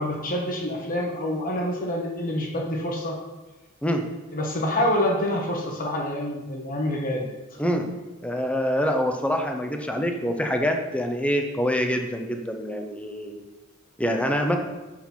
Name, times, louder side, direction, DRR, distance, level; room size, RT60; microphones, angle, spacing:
voice 1, 0.0-3.2 4.3-7.2, left 1 dB, 40° left, -1 dB, 1.1 m, -27 dB
voice 2, 8.2-13.4 14.0-14.6, equal, 5° left, 4 dB, 0.6 m, -25 dB
5.9 x 4.9 x 5.4 m, 1.2 s
head